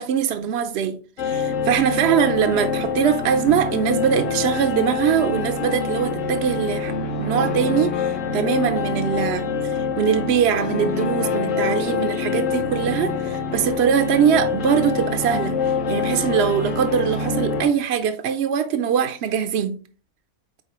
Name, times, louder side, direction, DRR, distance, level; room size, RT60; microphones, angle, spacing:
voice 1, 0.0-19.8, right 8 dB, 60° right, 0.7 m, -22 dB
sound 1, 1.2-17.6, left 5 dB, 65° left, 1.1 m, -25 dB
7.9 x 4.3 x 3.0 m
omnidirectional pair, 1.5 m